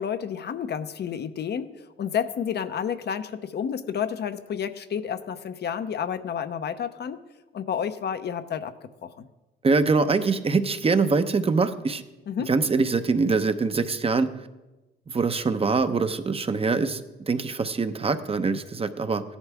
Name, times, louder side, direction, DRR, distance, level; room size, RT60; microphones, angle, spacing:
voice 1, 0.0-7.2 7.5-8.7 9.0-9.3 12.3-12.5, left 8 dB, 55° left, 10 dB, 0.8 m, -30 dB
voice 2, 9.6-12.0 12.4-14.3 15.1-17.0 17.3-19.2, right 4 dB, 30° right, 9 dB, 0.8 m, -23 dB
16.0 x 11.5 x 3.5 m, 1.1 s
cardioid pair, 90°, 20 cm